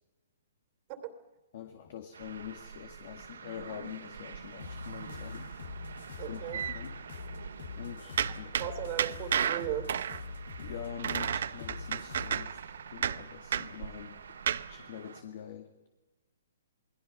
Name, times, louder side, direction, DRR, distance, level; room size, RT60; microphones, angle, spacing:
voice 1, 1.5-5.5 6.3-7.0 7.8-8.6 10.3-15.9, left 9 dB, 45° left, 6 dB, 2.0 m, -45 dB
sound 1, 2.1-15.2, right 6 dB, 85° right, 3.8 m, -49 dB
sound 2, 2.2-4.6 4.9-5.2 5.4-7.7 8.2-14.8, right 8 dB, 60° right, 0.9 m, -34 dB
sound 3, 4.6-12.5, left 5 dB, 70° left, 3.1 m, -44 dB
voice 2, 6.2-6.6 8.6-9.9, right 12 dB, 30° right, 8 dB, 2.9 m, -36 dB
28.5 x 20.5 x 5.7 m, 1.1 s
hypercardioid pair, 165°, 0 cm